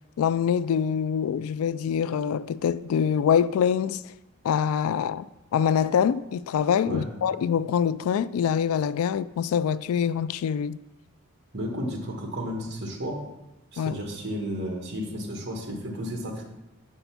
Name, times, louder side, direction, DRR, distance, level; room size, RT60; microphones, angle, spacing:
voice 1, 0.2-4.0 4.4-5.3 5.5-10.8 13.8-14.0, left 7 dB, 90° left, 0.3 m, -25 dB
voice 2, 11.5-13.2 13.7-16.4, equal, 50° right, 1.5 m, -32 dB
6.9 x 5.5 x 5.8 m
head